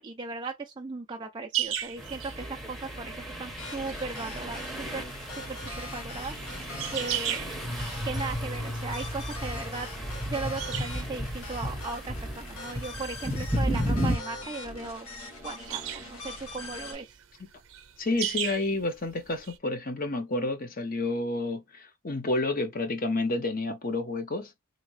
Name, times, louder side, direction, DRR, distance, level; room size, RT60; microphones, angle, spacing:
voice 1, 0.0-6.6 6.9-7.4 8.0-9.9 10.3-15.1 15.4-17.2, right 3 dB, 20° right, 0.3 m, -37 dB
sound 1, 1.5-19.6, right 12 dB, 70° right, 0.7 m, -39 dB
sound 2, 2.0-14.2, equal, ahead, 0.8 m, -34 dB
sound 3, 3.6-16.9, left 2 dB, 80° left, 1.4 m, -42 dB
voice 2, 18.0-24.5, left 2 dB, 40° left, 0.8 m, -30 dB
3.6 x 2.8 x 3.0 m
head